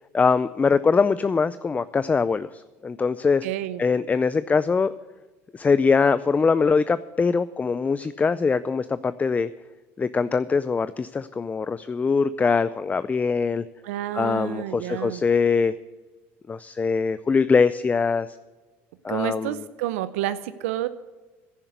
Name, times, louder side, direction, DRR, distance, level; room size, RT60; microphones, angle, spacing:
voice 1, 0.1-3.5 3.8-4.9 5.5-9.5 10.0-13.7 14.1-15.7 16.5-18.3 19.0-19.6, left 5 dB, 20° left, 15 dB, 0.4 m, -22 dB
voice 2, 3.4-3.8 13.8-15.2 19.1-20.9, right 13 dB, 85° right, 13 dB, 0.6 m, -29 dB
10.5 x 10.0 x 8.0 m, 1.3 s
supercardioid pair, 90°, 7 cm